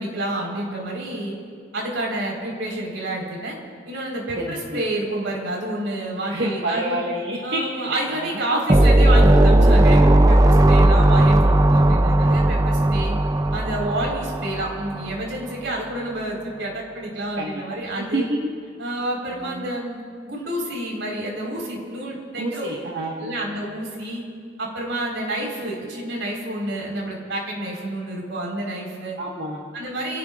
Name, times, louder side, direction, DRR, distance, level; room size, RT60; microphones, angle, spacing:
voice 1, 0.0-1.4 1.7-3.6 3.9-7.0 7.4-13.1 13.5-18.2 18.8-20.0 20.2-22.7 23.2-24.2 24.6-29.2 29.7-30.2, right 1 dB, 80° right, -1 dB, 4.4 m, -29 dB
voice 2, 4.4-4.8 6.3-8.6 9.4-9.7 11.9-12.4 12.9-13.2 17.4-17.8 18.1-18.2 19.4-19.7 22.3-23.4 29.2-29.6, right 1 dB, 65° right, -3 dB, 1.6 m, -29 dB
sound 1, 8.7-15.2, right 1 dB, 20° right, 0.4 m, -16 dB
30.0 x 18.0 x 2.5 m, 2.3 s
head